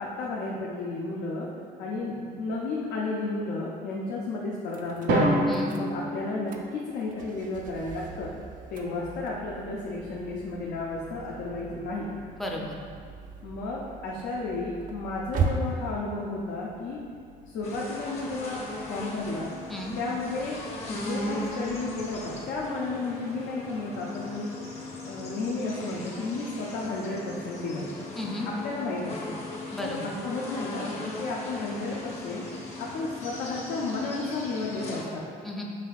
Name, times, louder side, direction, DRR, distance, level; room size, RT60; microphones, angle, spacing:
voice 1, 0.0-1.5 1.8-5.3 5.7-8.3 8.7-12.1 13.4-17.0 17.5-18.6 18.9-19.5 20.0-20.6 20.9-24.5 25.0-27.9 28.4-29.4 29.8-32.5 32.8-35.2, left 3 dB, 75° left, -4 dB, 0.6 m, -33 dB
sound 1, 4.7-22.7, right 4 dB, 50° right, 0.4 m, -39 dB
Drum, 5.1-7.1, right 1 dB, 75° right, 0.8 m, -26 dB
voice 2, 5.5-5.8 12.4-12.8 19.7-20.0 28.2-28.5 29.7-30.1 35.4-35.6, left 1 dB, ahead, -2 dB, 0.5 m, -34 dB
sound 2, 17.6-35.0, left 2 dB, 40° left, 0.9 m, -38 dB
5.6 x 3.0 x 2.4 m, 2.1 s
cardioid pair, 110°, 17 cm